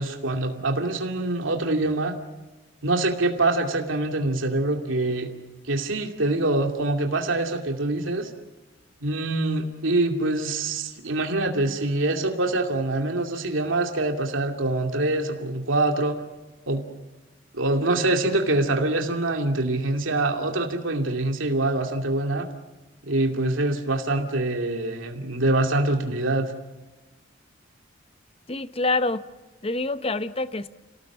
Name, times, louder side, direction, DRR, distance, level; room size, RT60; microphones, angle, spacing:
voice 1, 0.0-2.1 2.8-5.3 5.7-8.3 9.0-16.2 16.7-16.8 17.5-22.5 23.0-26.5, right 2 dB, 80° right, 4 dB, 2.4 m, -25 dB
voice 2, 28.5-29.2 29.6-30.7, left 2 dB, 30° left, 13 dB, 0.8 m, -26 dB
28.5 x 18.0 x 7.3 m, 1.2 s
head